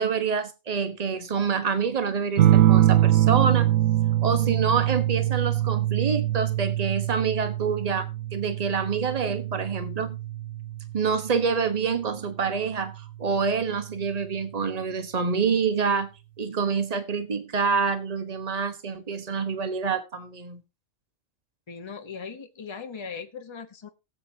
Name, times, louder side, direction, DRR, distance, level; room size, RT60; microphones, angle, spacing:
voice 1, 0.0-3.7 4.2-10.2 10.9-16.1 16.4-20.6, right 5 dB, 30° right, 1.2 m, -27 dB
sound 1, 2.4-11.5 12.9-13.5, right 13 dB, 75° right, 1.1 m, -23 dB
voice 2, 21.7-23.9, left 5 dB, 25° left, 1.0 m, -39 dB
18.5 x 7.9 x 2.8 m
omnidirectional pair, 1.4 m